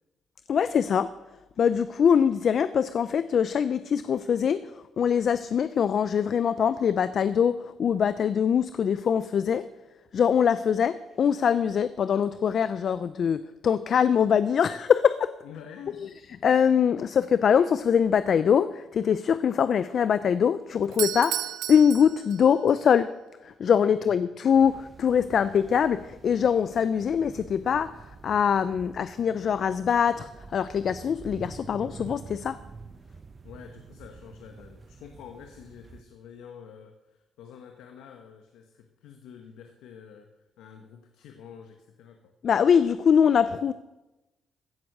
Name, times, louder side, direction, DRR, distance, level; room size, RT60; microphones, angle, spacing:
voice 1, 0.5-1.1 1.6-9.7 10.1-15.3 16.0-16.1 16.4-21.4 21.7-23.1 23.4-32.6 42.4-43.7, left 7 dB, 55° left, 14 dB, 0.5 m, -23 dB
voice 2, 15.4-16.2 24.0-24.1 33.4-40.3 40.6-42.3, left 7 dB, 90° left, 5 dB, 1.2 m, -47 dB
Doorbell, 20.8-22.8, right 12 dB, 85° right, 0.6 m, -33 dB
sound 1, 24.5-36.0, right 4 dB, 35° right, 0.8 m, -47 dB
15.5 x 7.9 x 6.7 m, 1.0 s
cardioid pair, 90°, 0 cm